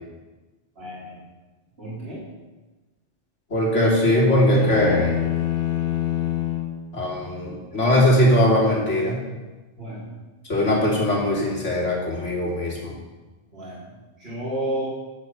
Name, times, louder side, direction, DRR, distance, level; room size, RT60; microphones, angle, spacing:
voice 1, 0.8-1.2 1.8-2.2 9.8-10.1 13.5-13.8 14.2-14.9, right 1 dB, 55° right, -8 dB, 3.6 m, -31 dB
voice 2, 3.5-5.1 6.9-9.2 10.5-12.9, left 1 dB, 80° left, -3 dB, 3.3 m, -20 dB
sound 1, 4.5-6.8, left 11 dB, 55° left, 1.4 m, -25 dB
9.6 x 8.9 x 6.8 m, 1.2 s
omnidirectional pair, 1.2 m